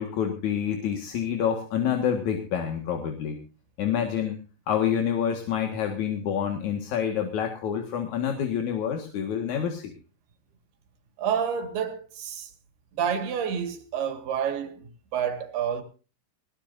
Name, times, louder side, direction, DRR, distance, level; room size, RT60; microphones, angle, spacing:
voice 1, 0.0-3.4 3.8-9.9, left 8 dB, 55° left, 2.7 m, -27 dB
voice 2, 11.2-12.5 13.0-15.8, right 8 dB, 70° right, 3.8 m, -29 dB
20.0 x 19.0 x 2.7 m
omnidirectional pair, 4.8 m